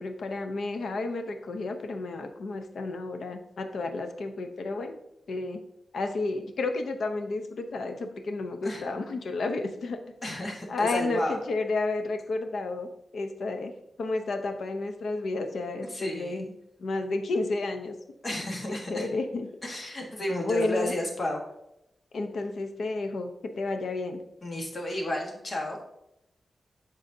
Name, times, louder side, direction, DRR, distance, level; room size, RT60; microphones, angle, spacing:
voice 1, 0.0-5.0 5.3-5.6 5.9-10.0 10.7-12.9 13.1-13.7 14.0-16.4 16.8-17.9 18.7-19.5 20.3-20.9 22.1-24.2, left 3 dB, 80° left, 6 dB, 0.7 m, -31 dB
voice 2, 10.2-11.4 15.9-16.5 18.2-19.1 19.6-21.4 24.4-25.8, left 1 dB, 40° left, 1 dB, 1.3 m, -32 dB
11.0 x 4.0 x 2.7 m, 0.82 s
wide cardioid pair, 130°, 0 cm